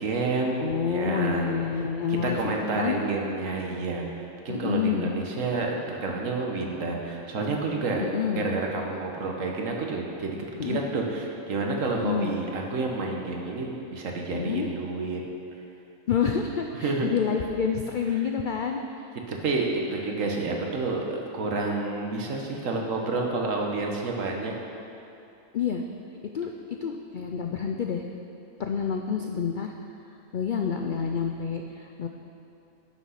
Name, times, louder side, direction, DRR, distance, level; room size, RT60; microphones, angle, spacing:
voice 1, 0.0-1.8 2.2-4.0 4.4-8.1 8.3-10.4 10.6-15.2 16.7-17.1 19.3-24.5, right 3 dB, 65° right, 0 dB, 1.5 m, -29 dB
voice 2, 0.6-3.0 4.5-5.1 8.0-8.5 10.6-10.9 11.9-12.3 14.3-14.7 16.1-18.8 25.5-25.8 26.3-26.5 26.8-28.1 28.6-29.7 30.3-32.1, left 7 dB, 80° left, 3 dB, 0.4 m, -28 dB
10.5 x 6.1 x 5.7 m, 2.7 s
omnidirectional pair, 1.5 m